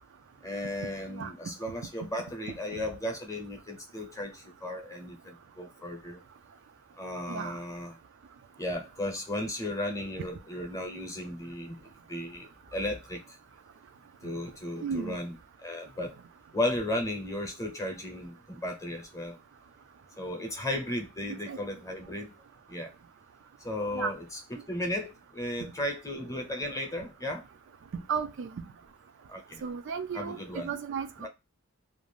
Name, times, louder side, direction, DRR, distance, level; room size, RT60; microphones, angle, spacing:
voice 1, 0.4-6.2 7.0-8.0 8.6-13.4 14.2-15.4 15.6-16.2 16.5-19.4 20.2-22.4 22.7-22.9 23.6-24.2 24.5-27.4 29.3-29.6 30.1-30.7 31.2-31.3, left 1 dB, 15° left, 4 dB, 0.8 m, -35 dB
voice 2, 14.8-15.2 21.5-21.6 23.9-24.1 28.1-28.5 29.6-30.4 30.6-31.3, right 6 dB, 60° right, 9 dB, 0.4 m, -34 dB
2.5 x 2.4 x 3.3 m, 0.24 s
head